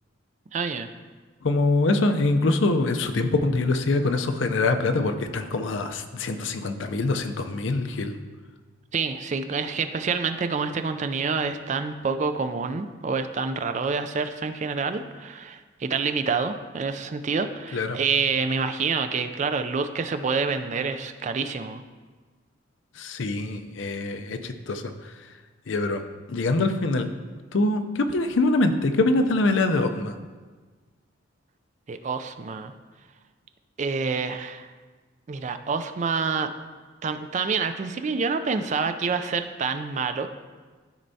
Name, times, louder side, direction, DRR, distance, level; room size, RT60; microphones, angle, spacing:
voice 1, 0.5-0.9 8.9-21.8 31.9-32.7 33.8-34.7 35.3-36.5 37.0-40.3, right 5 dB, 40° right, 9 dB, 0.4 m, -27 dB
voice 2, 1.4-8.1 17.7-18.0 23.0-25.1 25.7-26.0 26.3-27.1 27.5-30.1, left 2 dB, 70° left, 8 dB, 0.5 m, -24 dB
13.0 x 4.4 x 2.7 m, 1.4 s
head